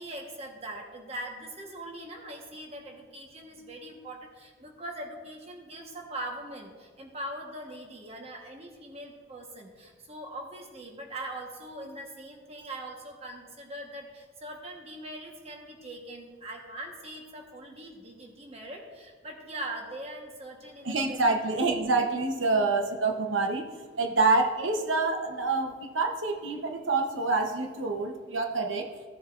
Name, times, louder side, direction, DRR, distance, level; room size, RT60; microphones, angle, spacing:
voice 1, 0.0-21.2 21.5-21.6 22.6-22.7 24.1-24.3, right 1 dB, 35° right, 1 dB, 1.3 m, -41 dB
voice 2, 20.8-28.9, right 3 dB, 85° right, 3 dB, 0.9 m, -27 dB
15.5 x 7.3 x 2.5 m, 1.5 s
head